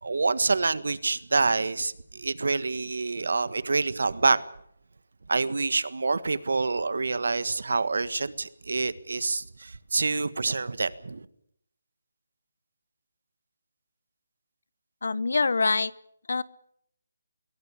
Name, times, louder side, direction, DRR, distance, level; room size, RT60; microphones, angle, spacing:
voice 1, 0.0-4.4 5.3-11.3, right 3 dB, 70° right, 1.6 m, -27 dB
voice 2, 15.0-15.9 16.3-16.4, left 3 dB, 65° left, 1.0 m, -24 dB
23.0 x 17.5 x 8.5 m
hypercardioid pair, 175°, 0 cm